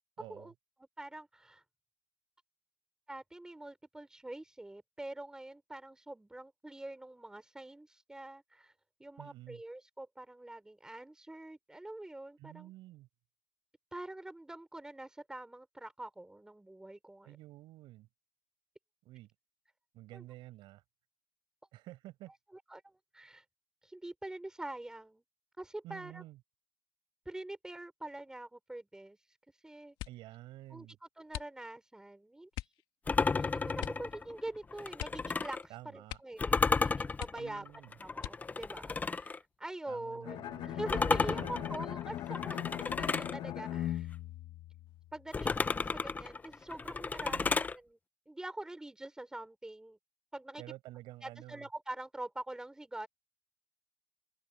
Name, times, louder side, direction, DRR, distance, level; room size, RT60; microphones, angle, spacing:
voice 1, 0.2-0.5 9.2-9.6 12.4-13.1 17.2-18.1 19.0-19.3 19.9-20.8 21.7-22.3 25.8-26.4 30.1-31.0 35.7-36.2 37.3-37.9 39.9-40.8 41.4-41.7 42.3-42.6 47.3-47.6 50.6-51.6, right 16 dB, 75° right, 6.6 m, -50 dB
voice 2, 0.8-1.6 3.1-8.7 9.0-12.7 13.9-17.4 20.1-20.2 22.5-23.4 23.8-25.2 25.6-26.2 27.3-29.2 29.6-30.0 30.7-30.9 31.2-32.5 33.3-35.6 35.9-37.7 38.0-44.1 45.1-48.0 48.3-50.0 50.3-50.6 51.2-53.1, right 1 dB, 10° right, 3.9 m, -45 dB
sound 1, 29.9-30.4 31.3-31.9 32.5-32.8 33.8-34.1 34.4-34.5 34.9-35.7 36.0-36.5 36.8-36.9 37.2-37.7 38.2-38.7 39.4-40.0 40.4-40.8, left 15 dB, 80° left, 2.1 m, -44 dB
sound 2, 33.1-35.6 36.4-39.4 40.9-43.4 45.3-47.7, left 4 dB, 20° left, 0.8 m, -33 dB
Bowed string instrument, 40.2-45.3, left 13 dB, 65° left, 1.2 m, -39 dB
open air
cardioid pair, 125°, 8 cm